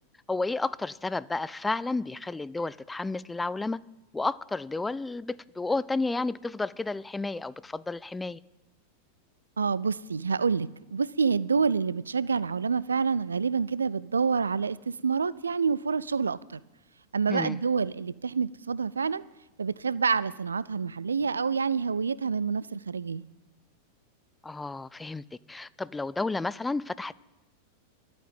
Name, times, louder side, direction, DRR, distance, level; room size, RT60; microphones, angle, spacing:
voice 1, 0.3-3.8 4.1-8.4 17.3-17.6 24.4-27.1, left 3 dB, 10° left, 0.4 m, -31 dB
voice 2, 9.6-16.6 17.1-19.2 19.6-23.2, right 5 dB, 75° right, 0.4 m, -27 dB
12.0 x 8.6 x 9.5 m
figure-of-eight pair, 90°, 0 cm